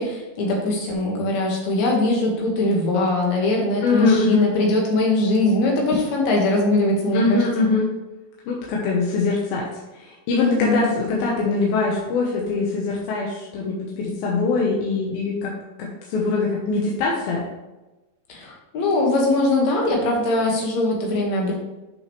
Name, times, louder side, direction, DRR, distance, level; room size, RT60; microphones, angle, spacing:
voice 1, 0.0-7.7 10.4-10.9 18.3-21.5, left 2 dB, 55° left, -1 dB, 2.6 m, -21 dB
voice 2, 3.8-4.5 7.1-7.9 8.5-9.7 10.0-15.5 15.8-17.4, left 3 dB, 75° left, -3 dB, 2.8 m, -23 dB
8.6 x 6.4 x 3.2 m, 1.1 s
omnidirectional pair, 4.5 m